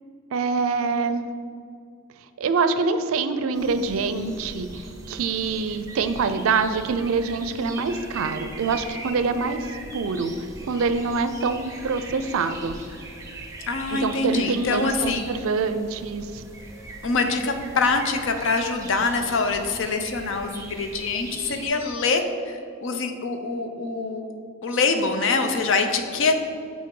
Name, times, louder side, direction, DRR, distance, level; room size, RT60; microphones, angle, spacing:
voice 1, 0.3-1.3 2.4-9.6 9.9-12.7 13.9-16.4, right 4 dB, 85° right, 11 dB, 0.4 m, -25 dB
sound 1, 3.5-21.7, right 2 dB, 15° right, 0.7 m, -40 dB
voice 2, 13.7-15.3 17.0-24.3 24.6-26.4, left 4 dB, 65° left, 6 dB, 0.5 m, -24 dB
7.5 x 4.1 x 3.7 m, 2.3 s
head